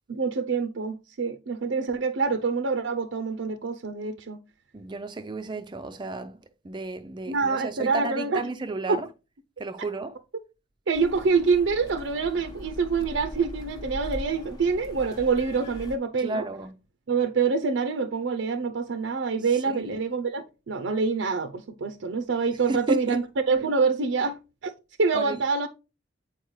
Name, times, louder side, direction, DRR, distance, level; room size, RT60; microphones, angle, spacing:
voice 1, 0.1-4.4 7.3-8.4 8.9-9.0 10.9-16.5 17.1-24.7 25.0-25.7, right 4 dB, 80° right, 0.5 m, -26 dB
voice 2, 4.7-6.4 6.6-9.1 9.6-10.2 16.2-16.7 19.5-20.0 22.7-23.2 25.1-25.4, right 2 dB, 25° right, 0.4 m, -33 dB
sound 1, 10.9-16.0, equal, 20° left, 0.8 m, -40 dB
7.9 x 4.4 x 3.1 m
head